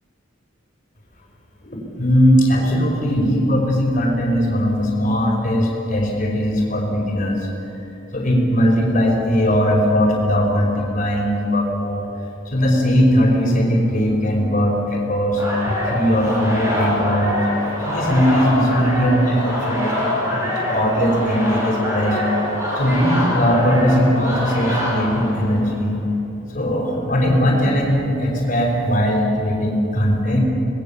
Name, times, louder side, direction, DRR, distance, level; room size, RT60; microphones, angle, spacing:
voice 1, 1.6-7.4 8.1-12.0 12.5-15.4 15.8-22.2 22.7-26.0 26.5-30.4, equal, 35° left, -1 dB, 5.2 m, -19 dB
sound 1, 15.4-25.8, left 1 dB, 15° right, 7.0 m, -24 dB
26.0 x 20.5 x 7.2 m, 3.0 s
head